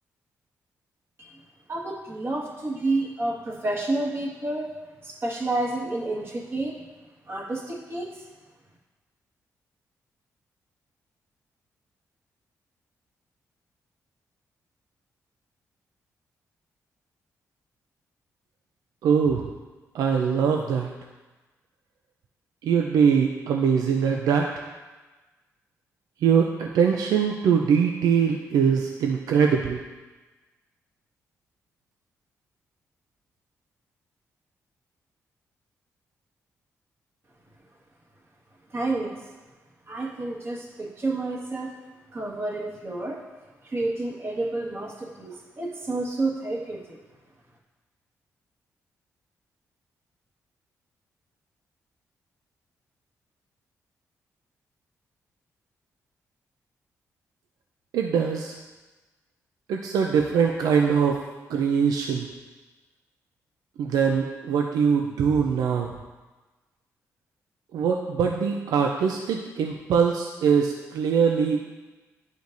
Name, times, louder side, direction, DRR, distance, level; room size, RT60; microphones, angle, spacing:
voice 1, 1.7-4.7 5.0-6.8 7.2-8.3 38.7-39.2 39.9-41.7 42.1-43.2 43.6-47.0, right 2 dB, 40° right, -3 dB, 1.7 m, -30 dB
voice 2, 19.0-19.5 19.9-20.9 22.6-24.7 26.2-29.8 57.9-58.6 59.7-61.2 61.5-62.3 63.8-66.0 67.7-71.7, right 6 dB, 85° right, 2 dB, 0.5 m, -22 dB
10.5 x 5.1 x 2.6 m, 1.2 s
cardioid pair, 70°, 6 cm